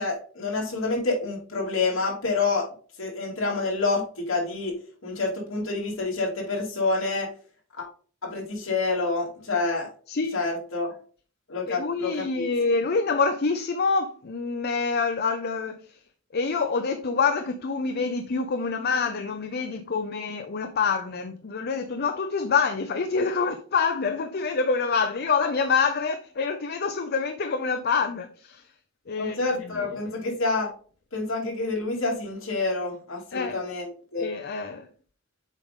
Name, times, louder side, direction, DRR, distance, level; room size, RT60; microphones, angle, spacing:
voice 1, 0.0-2.7 3.0-4.7 5.0-7.3 7.8-7.9 8.2-9.9 10.3-10.9 11.5-12.5 29.2-30.7 31.1-33.9 34.1-34.3, left 3 dB, 65° left, 2.8 m, -28 dB
voice 2, 11.7-16.0 16.3-28.7 29.1-30.2 33.3-33.6 34.2-34.9, left 5 dB, 50° left, 0.6 m, -26 dB
7.4 x 5.1 x 3.7 m
head